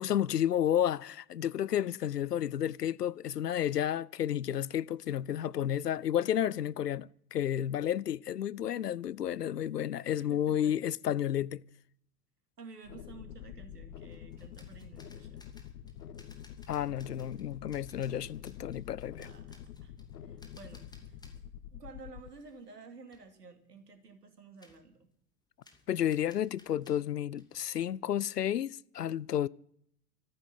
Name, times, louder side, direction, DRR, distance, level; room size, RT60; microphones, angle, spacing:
voice 1, 0.0-11.6 16.7-19.3 25.9-29.5, left 10 dB, 85° left, 0.5 m, -31 dB
voice 2, 10.2-10.7 12.6-15.4 18.4-18.6 19.2-19.9 20.2-21.2 21.7-25.1, right 4 dB, 85° right, 2.6 m, -52 dB
sound 1, 12.8-22.3, left 10 dB, 65° left, 1.1 m, -47 dB
sound 2, 14.1-21.5 21.9-22.8 23.1-23.3 24.6-24.9 25.6-27.9, left 2 dB, 10° left, 2.6 m, -62 dB
14.0 x 9.5 x 8.5 m
figure-of-eight pair, 85°, 47 cm